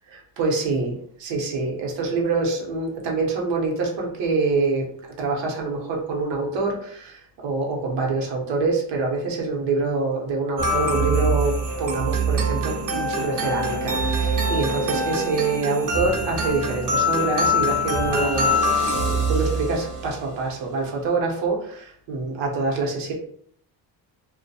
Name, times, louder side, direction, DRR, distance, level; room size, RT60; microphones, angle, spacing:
voice 1, 0.1-4.9 5.2-23.1, right 3 dB, 85° right, 0 dB, 0.9 m, -26 dB
sound 1, 10.6-20.2, right 1 dB, 45° right, 0.6 m, -24 dB
2.5 x 2.1 x 2.7 m, 0.64 s
cardioid pair, 120°, 43 cm